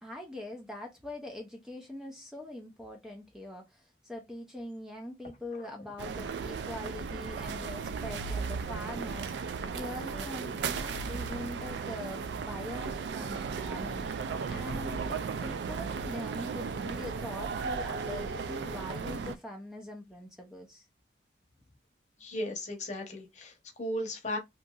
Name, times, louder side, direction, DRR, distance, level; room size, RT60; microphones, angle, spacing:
voice 1, 0.0-20.9, left 1 dB, 5° right, 0.4 m, -43 dB
sound 1, 6.0-19.4, right 5 dB, 75° right, 0.3 m, -35 dB
voice 2, 22.2-24.4, left 1 dB, 40° left, 0.8 m, -36 dB
2.8 x 2.6 x 2.3 m
head